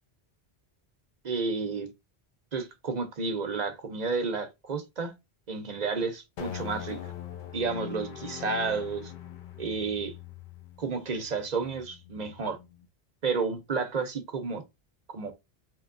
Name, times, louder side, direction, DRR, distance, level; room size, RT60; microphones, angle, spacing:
voice 1, 1.2-1.9 2.5-5.1 5.5-7.0 7.5-9.1 9.6-10.1 10.8-12.6 13.2-14.6 15.1-15.3, right 4 dB, 50° right, 0.6 m, -31 dB
sound 1, 6.4-12.8, left 9 dB, 60° left, 0.6 m, -42 dB
4.3 x 3.0 x 2.5 m
omnidirectional pair, 1.1 m